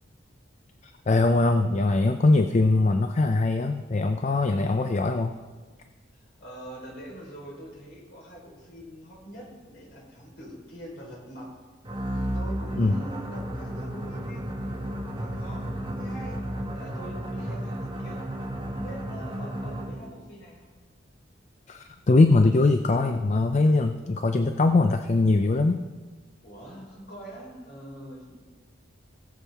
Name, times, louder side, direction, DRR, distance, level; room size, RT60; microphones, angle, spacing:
voice 1, 1.1-5.3 12.8-13.0 21.7-25.8, left 2 dB, 40° left, 7 dB, 0.4 m, -21 dB
voice 2, 6.1-11.5 12.1-14.6 15.1-16.4 16.7-18.2 18.7-20.7 26.4-28.4, equal, 60° left, -2 dB, 3.8 m, -44 dB
sound 1, 11.8-20.1, right 1 dB, 25° right, 1.7 m, -33 dB
20.0 x 7.3 x 3.5 m, 1.4 s
head